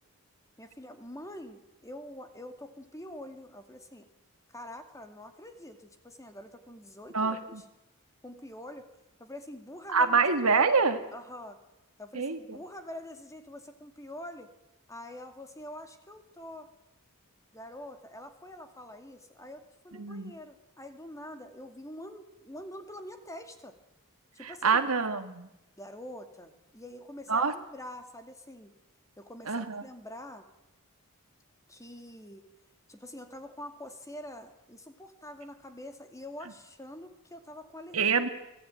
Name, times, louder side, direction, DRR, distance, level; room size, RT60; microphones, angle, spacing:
voice 1, 0.6-4.1 4.5-7.6 8.2-8.9 9.2-10.2 10.5-10.7 11.1-11.6 12.0-14.5 14.9-16.7 17.5-23.7 24.3-24.8 25.8-28.7 29.2-30.5 31.7-32.5 32.9-38.1, left 1 dB, 15° left, 7 dB, 2.3 m, -45 dB
voice 2, 7.1-7.6 9.9-11.0 12.1-12.6 20.0-20.3 24.4-25.5 27.3-27.5 29.5-29.8 37.9-38.3, right 5 dB, 70° right, 8 dB, 1.8 m, -26 dB
24.5 x 17.0 x 9.2 m, 0.94 s
head